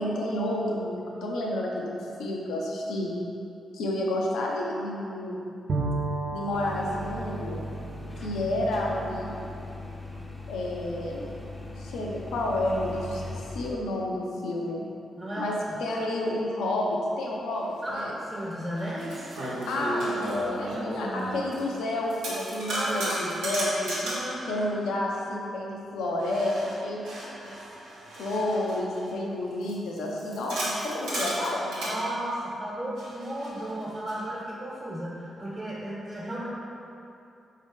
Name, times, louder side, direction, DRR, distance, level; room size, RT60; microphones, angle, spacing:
voice 1, 0.0-3.2 3.7-5.4 6.3-7.6 8.2-9.4 10.5-11.2 11.8-14.8 15.4-18.1 19.7-24.0 24.5-27.1 27.4-27.5 28.2-31.9, left 1 dB, 80° left, -2 dB, 0.5 m, -30 dB
Bowed string instrument, 5.7-9.4, right 3 dB, 65° right, 0.6 m, -34 dB
sound 1, 6.5-13.7, left 1 dB, 10° left, 0.6 m, -39 dB
voice 2, 15.2-15.7 17.8-19.4 22.7-23.2 24.0-24.7 31.8-36.5, right 1 dB, 25° right, -7 dB, 1.1 m, -34 dB
sound 2, 17.9-18.0 18.7-21.8 22.1-24.4 26.2-29.1 29.6-32.0 33.0-34.2, right 1 dB, 85° right, 1.0 m, -34 dB
4.6 x 2.8 x 3.5 m, 2.7 s
hypercardioid pair, 45°, 0 cm